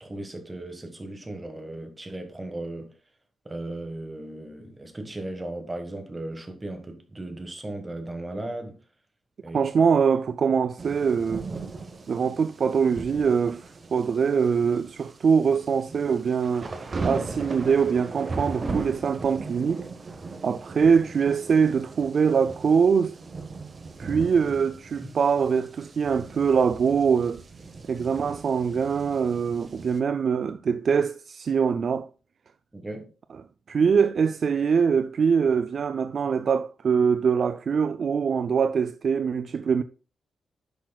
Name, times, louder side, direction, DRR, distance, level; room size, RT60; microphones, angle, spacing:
voice 1, 0.0-2.9 3.4-8.8 9.4-9.6 25.0-25.1 32.7-33.1, right 1 dB, 15° right, 1.4 m, -36 dB
voice 2, 9.5-11.5 12.1-16.7 17.0-19.8 20.4-23.2 24.0-27.4 27.9-32.1 33.7-39.8, right 6 dB, 50° right, 0.3 m, -23 dB
sound 1, 10.8-30.0, right 3 dB, 30° right, 0.9 m, -38 dB
10.5 x 6.2 x 2.3 m
wide cardioid pair, 145°, 0 cm